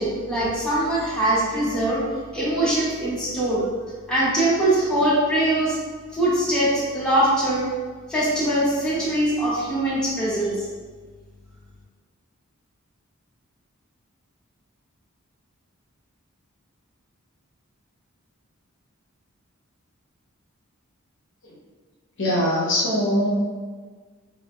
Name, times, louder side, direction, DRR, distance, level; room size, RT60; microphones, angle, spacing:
voice 1, 0.0-2.0 2.3-3.7 4.1-5.8 6.1-7.7 8.1-10.6, right 1 dB, 5° left, -9 dB, 0.8 m, -22 dB
voice 2, 22.2-23.3, equal, 65° left, -4 dB, 0.6 m, -21 dB
3.8 x 2.0 x 2.3 m, 1.5 s
head